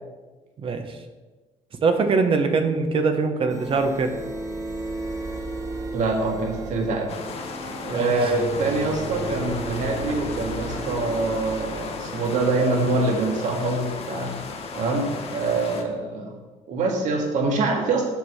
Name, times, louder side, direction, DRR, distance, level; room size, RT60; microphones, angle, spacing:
voice 1, 0.6-1.0 1.8-4.2 7.9-8.1, right 4 dB, 45° right, 6 dB, 1.0 m, -22 dB
sound 1, 3.5-15.1, right 2 dB, 25° right, 1.1 m, -35 dB
voice 2, 5.9-7.1 7.8-14.4 14.8-16.3 16.7-18.1, right 3 dB, 70° right, 1 dB, 1.9 m, -25 dB
sound 2, 7.1-15.8, left 4 dB, 50° left, 1.2 m, -35 dB
7.4 x 5.8 x 6.3 m, 1.3 s
cardioid pair, 130°, 13 cm